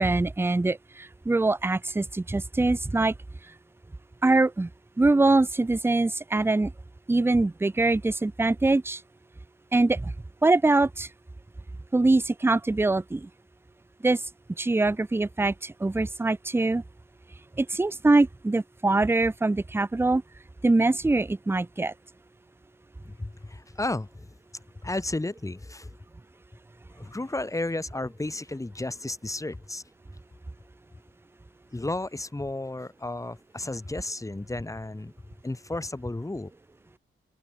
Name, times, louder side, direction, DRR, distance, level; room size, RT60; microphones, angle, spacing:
voice 1, 0.0-3.1 4.2-4.7 5.0-6.7 7.1-9.0 9.7-10.1 10.4-11.1 11.9-13.3 14.0-14.2 14.6-16.8 17.6-20.2 20.6-21.9, right 2 dB, 10° right, 0.7 m, -23 dB
voice 2, 23.0-24.3 24.8-25.9 27.0-29.8 31.7-35.1 35.4-36.5, left 2 dB, 15° left, 5.8 m, -33 dB
open air
cardioid pair, 105°, 21 cm